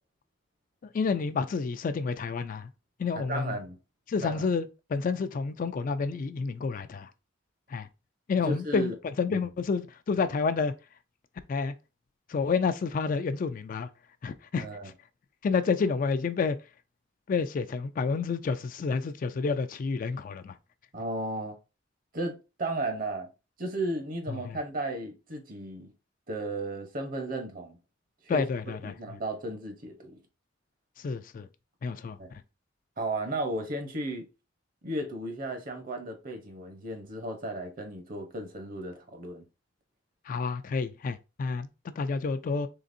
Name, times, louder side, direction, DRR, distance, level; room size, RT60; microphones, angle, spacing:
voice 1, 0.9-2.7 3.0-3.6 4.1-7.1 7.7-7.9 8.3-8.9 9.2-10.7 11.5-11.7 12.3-13.9 14.2-14.9 15.4-16.6 17.3-20.6 24.3-24.6 28.3-28.9 31.0-31.5 31.8-32.4 40.3-42.7, left 5 dB, 45° left, 0.3 m, -29 dB
voice 2, 3.1-3.8 4.2-4.5 8.4-8.9 14.6-14.9 20.9-21.6 22.1-23.3 23.6-25.9 26.3-27.8 28.3-28.4 28.8-30.2 32.2-32.3 33.0-34.3 34.8-39.4, right 2 dB, 45° right, 0.9 m, -34 dB
3.8 x 3.3 x 2.6 m
head